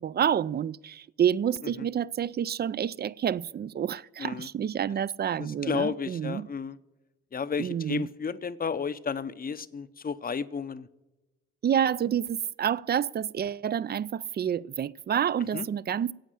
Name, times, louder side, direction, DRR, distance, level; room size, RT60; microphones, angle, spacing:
voice 1, 0.0-6.5 7.6-8.0 11.6-16.1, right 9 dB, 35° right, 0.4 m, -28 dB
voice 2, 5.4-6.8 7.3-10.9 15.5-15.7, left 6 dB, 30° left, 0.7 m, -32 dB
11.5 x 8.5 x 9.9 m
cardioid pair, 90°, 30 cm